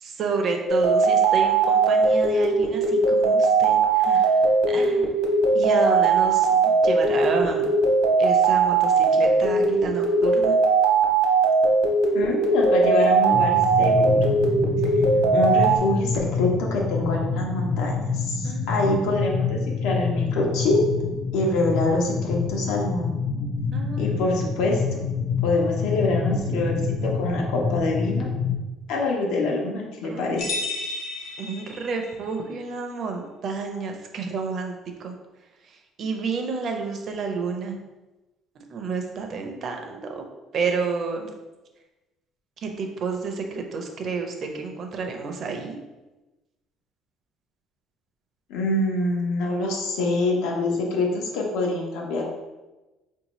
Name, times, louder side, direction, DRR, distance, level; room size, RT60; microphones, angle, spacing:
voice 1, 0.0-5.2 5.5-7.7 8.2-10.6 18.4-18.8 23.7-24.2 30.0-30.4 31.4-34.7 35.0-35.1 35.7-37.8 38.7-40.2 40.5-41.3 42.6-45.8, right 4 dB, 40° right, 3 dB, 0.5 m, -30 dB
sound 1, 0.7-15.8, right 4 dB, 70° right, 0.9 m, -20 dB
voice 2, 12.1-14.2 15.3-20.8 21.3-23.2 24.0-25.0 25.4-26.7 27.0-28.3 28.9-30.4 48.5-52.2, left 2 dB, 85° left, -1 dB, 0.8 m, -25 dB
sound 2, 13.3-28.6, left 5 dB, 30° left, 0.5 m, -27 dB
sound 3, 30.4-32.2, left 3 dB, 60° left, 1.0 m, -32 dB
4.4 x 2.7 x 3.0 m, 1.1 s
cardioid pair, 160°, 0 cm